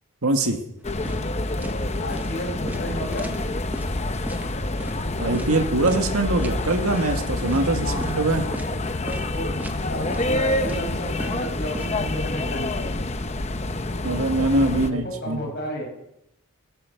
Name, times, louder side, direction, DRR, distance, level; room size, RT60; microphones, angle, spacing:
voice 1, 0.2-0.6 5.2-8.4 14.0-15.5, right 2 dB, 80° right, 4 dB, 2.0 m, -23 dB
sound 1, 0.8-14.9, left 2 dB, 30° left, 0.8 m, -27 dB
sound 2, 1.0-1.3 1.6-1.8 2.1-2.3 2.7-3.9 4.3-4.5 4.8-5.0 5.3-5.5 5.9-6.1 6.4-6.6 6.9-7.2 7.5-7.6 8.0-8.2 8.5-8.8 9.1-9.2 9.6-9.8 10.1-10.3 10.7-11.9, right 1 dB, 10° right, 1.0 m, -37 dB
voice 2, 2.0-3.3 7.8-8.1 9.0-9.5 9.9-12.9 14.8-15.9, equal, 50° left, 1 dB, 5.7 m, -32 dB
17.0 x 11.5 x 7.1 m, 0.82 s
head